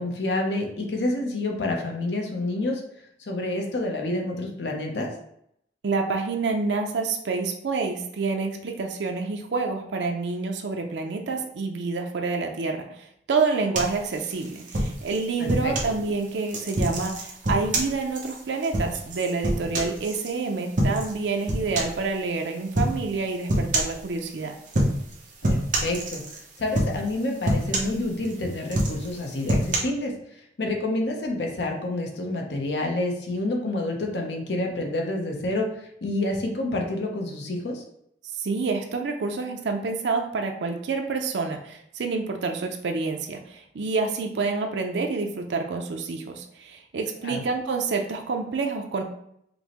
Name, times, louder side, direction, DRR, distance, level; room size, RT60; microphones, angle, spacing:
voice 1, 0.0-2.8 3.2-5.1 15.4-15.7 25.4-37.8 47.2-47.4, left 2 dB, 75° left, 1 dB, 0.7 m, -28 dB
voice 2, 5.8-24.5 38.4-49.0, right 4 dB, 80° right, 3 dB, 0.5 m, -28 dB
sound 1, 13.7-16.0 16.5-20.3 20.8-21.2 21.5-22.0 22.7-23.0 23.5-24.0 24.7-25.1 25.4-26.4 26.7-27.1 27.4-28.3 28.7-29.8, right 1 dB, 45° right, 0.8 m, -26 dB
5.2 x 2.1 x 2.9 m, 0.73 s
head